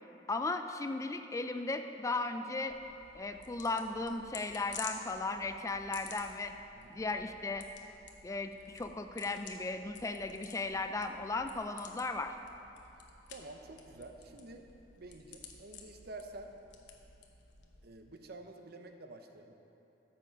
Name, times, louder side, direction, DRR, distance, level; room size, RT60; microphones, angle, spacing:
voice 1, 0.3-2.8 3.1-6.5 6.9-7.7 8.2-12.4, left 3 dB, 20° left, 7 dB, 0.4 m, -36 dB
sound 1, 2.7-17.9, left 6 dB, 75° left, 1.0 m, -52 dB
voice 2, 13.3-14.7 15.0-16.5 17.8-19.6, right 2 dB, 60° right, 5 dB, 0.8 m, -49 dB
13.5 x 6.8 x 5.1 m, 2.9 s
head